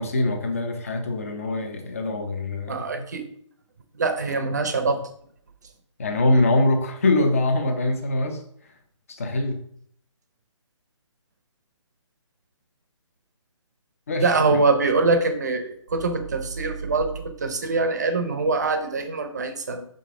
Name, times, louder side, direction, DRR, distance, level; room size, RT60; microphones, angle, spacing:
voice 1, 0.0-3.0 6.0-8.4 9.2-9.6 14.1-14.6, left 2 dB, 25° left, 6 dB, 0.7 m, -23 dB
voice 2, 2.7-3.2 3.9-5.0 14.2-19.8, right 3 dB, 35° right, 8 dB, 0.7 m, -23 dB
6.7 x 5.2 x 3.7 m, 0.64 s
hypercardioid pair, 175°, 17 cm